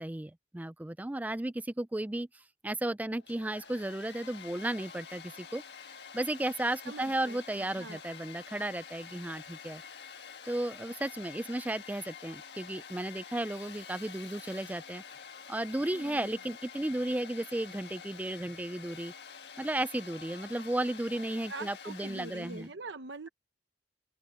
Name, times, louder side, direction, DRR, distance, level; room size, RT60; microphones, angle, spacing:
voice 1, 0.0-5.6 6.1-9.8 10.5-15.0 15.5-19.1 19.6-22.7, right 1 dB, 10° right, 0.4 m, -34 dB
Domestic sounds home sounds, 3.2-22.7, left 7 dB, 70° left, 1.5 m, -48 dB
voice 2, 6.9-8.0 15.9-16.4 21.1-21.2 21.5-23.3, right 3 dB, 85° right, 0.9 m, -44 dB
open air
head